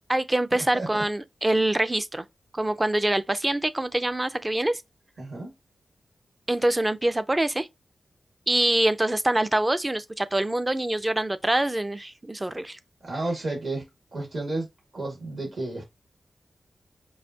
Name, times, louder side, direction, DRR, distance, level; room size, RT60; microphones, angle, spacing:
voice 1, 0.1-2.3 2.5-4.8 6.5-7.7 8.5-12.8, right 1 dB, 15° right, 0.4 m, -25 dB
voice 2, 5.2-5.5 13.0-14.7 14.9-15.9, right 2 dB, 55° right, 1.9 m, -32 dB
5.4 x 2.5 x 2.8 m
wide cardioid pair, 130°, 0 cm